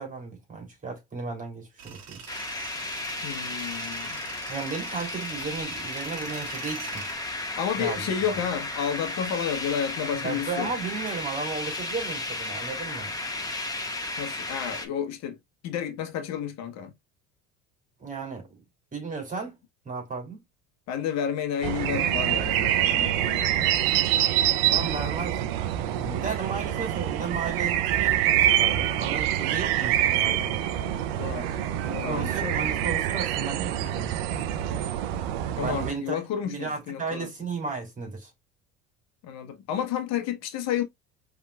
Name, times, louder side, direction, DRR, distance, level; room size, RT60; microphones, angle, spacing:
voice 1, 0.0-2.3 4.5-7.1 7.8-8.1 10.2-13.1 18.0-18.5 18.9-19.6 19.8-20.4 24.6-30.6 31.8-34.5 35.6-36.2 36.4-38.3, right 4 dB, 25° right, 3.2 m, -34 dB
Tools, 1.8-7.1, right 7 dB, 55° right, 1.4 m, -43 dB
sound 1, 2.3-14.9, left 2 dB, 10° left, 1.6 m, -34 dB
voice 2, 3.2-4.2 7.6-10.7 14.2-15.4 15.6-16.9 20.9-23.7 31.2-31.6 31.9-32.6 35.5-37.3 39.2-40.8, left 8 dB, 60° left, 1.3 m, -31 dB
sound 2, 21.6-35.9, right 12 dB, 75° right, 0.7 m, -25 dB
5.3 x 3.6 x 2.4 m
hypercardioid pair, 85°, 30 cm